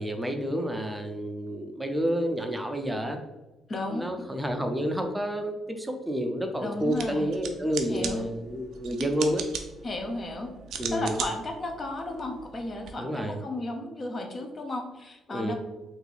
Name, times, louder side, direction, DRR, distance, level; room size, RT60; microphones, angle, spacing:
voice 1, 0.0-3.2 3.9-9.4 10.8-11.2 13.0-13.4 15.3-15.6, equal, 10° right, 4 dB, 0.5 m, -29 dB
voice 2, 3.7-4.1 6.6-7.4 7.9-8.2 9.8-10.5 10.9-15.6, left 2 dB, 40° left, 3 dB, 0.6 m, -34 dB
sound 1, 6.8-12.9, right 7 dB, 75° right, 0.4 m, -39 dB
2.7 x 2.5 x 3.9 m, 1.1 s
cardioid pair, 90°, 0 cm